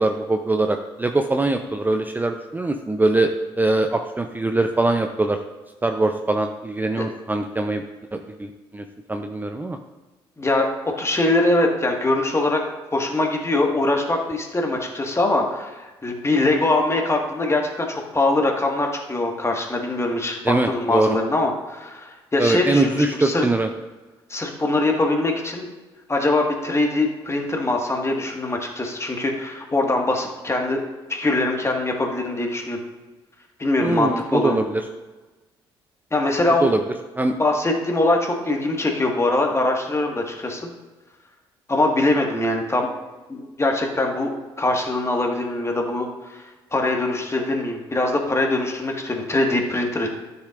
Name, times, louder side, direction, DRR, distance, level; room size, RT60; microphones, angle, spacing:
voice 1, 0.0-3.3 3.6-5.4 5.8-7.8 8.1-9.8 20.4-21.2 22.4-23.7 33.8-34.8 36.6-36.8 37.2-37.3, right 2 dB, 15° right, 6 dB, 0.6 m, -22 dB
voice 2, 10.4-10.7 11.0-12.6 12.9-23.4 24.3-25.7 26.1-30.8 31.1-32.8 33.6-34.6 36.1-36.7 37.4-40.7 41.7-42.9 43.3-46.4 46.7-50.1, left 2 dB, 20° left, 1 dB, 1.7 m, -22 dB
12.5 x 6.7 x 2.5 m, 1.2 s
hypercardioid pair, 50°, 13 cm